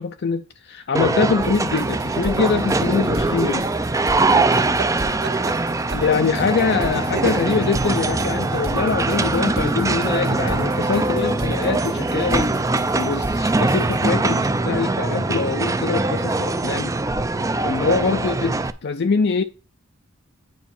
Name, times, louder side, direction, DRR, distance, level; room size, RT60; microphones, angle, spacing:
voice 1, 0.0-3.7 5.9-16.9 17.6-18.5 18.8-19.4, left 5 dB, 50° left, 0.5 m, -23 dB
sound 1, 0.9-18.7, right 2 dB, 15° right, 0.4 m, -22 dB
sound 2, 1.4-14.1, equal, 75° right, 1.7 m, -35 dB
voice 2, 4.5-5.6 5.9-6.0 7.1-7.2 8.5-8.6 17.6-18.0, right 4 dB, 55° right, 1.5 m, -32 dB
9.3 x 5.2 x 4.3 m
head